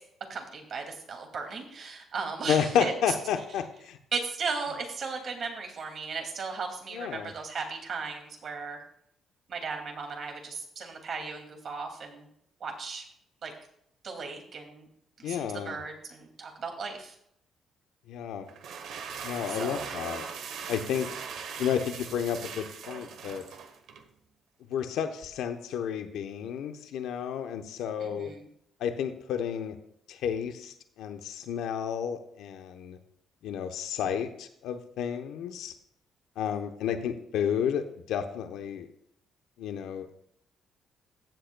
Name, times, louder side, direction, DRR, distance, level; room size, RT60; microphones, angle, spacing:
voice 1, 0.3-2.9 4.1-8.8 9.5-12.3 12.6-13.0 13.4-13.5 14.0-14.9 15.2-17.1 19.5-20.0 28.0-28.5, right 4 dB, 55° right, 3 dB, 2.3 m, -36 dB
voice 2, 2.5-4.0 6.9-7.3 15.2-15.8 18.1-18.5 19.2-20.3 20.7-21.1 21.6-23.4 24.7-28.3 28.8-29.8 30.1-33.0 33.4-35.7 36.4-38.9 39.6-40.1, left 8 dB, 85° left, 7 dB, 0.8 m, -31 dB
sound 1, 18.5-24.1, right 6 dB, 80° right, 1.0 m, -40 dB
15.0 x 7.9 x 2.3 m, 0.71 s
cardioid pair, 90°, 0 cm